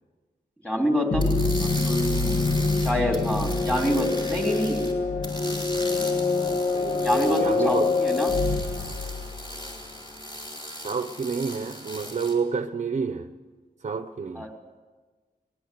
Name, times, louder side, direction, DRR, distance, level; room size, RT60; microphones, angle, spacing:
voice 1, 0.6-2.2 2.8-4.8 6.0-6.2 7.0-8.3 14.4-14.5, equal, 5° left, 3.5 m, -26 dB
sound 1, 1.1-9.7, left 3 dB, 70° left, 1.4 m, -25 dB
sound 2, 1.2-4.9 5.2-12.3, equal, 25° left, 4.5 m, -38 dB
voice 2, 6.7-7.9 10.8-13.3 13.8-14.5, right 5 dB, 45° right, 0.7 m, -29 dB
22.5 x 19.5 x 7.9 m
wide cardioid pair, 160°, 17 cm